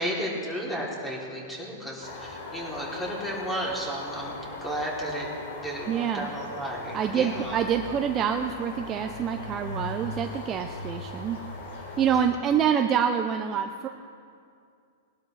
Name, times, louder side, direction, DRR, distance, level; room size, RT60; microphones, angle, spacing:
voice 1, 0.0-5.3 5.6-7.6 12.1-12.2, equal, 5° left, -4 dB, 3.1 m, -33 dB
sound 1, 2.0-12.3, left 2 dB, 70° left, 3.8 m, -39 dB
voice 2, 5.9-6.3 6.9-11.4 12.0-13.9, right 8 dB, 25° right, 5 dB, 0.5 m, -26 dB
20.5 x 12.0 x 3.3 m, 2.3 s
hypercardioid pair, 140°, 0 cm